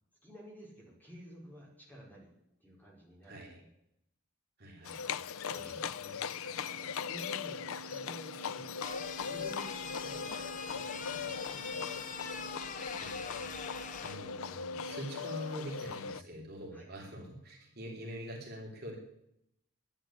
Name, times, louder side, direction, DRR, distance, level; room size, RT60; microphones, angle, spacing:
voice 1, 0.2-2.3 2.6-3.7 5.1-5.2 5.5-5.9 6.4-6.6 7.1-8.7 9.2-12.1 16.7-16.8, equal, 10° left, -3 dB, 4.9 m, -52 dB
voice 2, 3.2-3.6 4.6-5.0 5.5-6.2 13.0-19.0, equal, 45° right, -1 dB, 3.1 m, -45 dB
Livestock farm animals working animals, 4.8-16.2, left 6 dB, 65° left, 0.5 m, -39 dB
sound 1, 6.2-15.8, right 13 dB, 70° right, 0.8 m, -53 dB
sound 2, 8.8-14.1, left 6 dB, 35° left, 1.0 m, -43 dB
11.0 x 10.5 x 10.0 m, 0.78 s
head